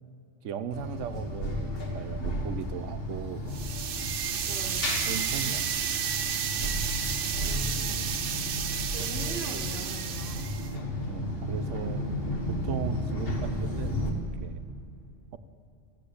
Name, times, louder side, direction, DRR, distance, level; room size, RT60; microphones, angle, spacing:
voice 1, 0.4-3.5 5.1-5.7 11.0-12.1 12.5-14.0 14.4-14.6, right 7 dB, 85° right, 11 dB, 1.1 m, -37 dB
sound 1, 0.7-14.1, left 1 dB, 50° left, 1.7 m, -33 dB
sound 2, 3.5-10.7, right 8 dB, 55° right, 0.7 m, -32 dB
voice 2, 4.4-4.8 7.4-8.1 8.9-10.4 13.3-13.5, right 1 dB, ahead, -5 dB, 3.0 m, -42 dB
13.5 x 8.8 x 8.5 m, 2.7 s
omnidirectional pair, 1.2 m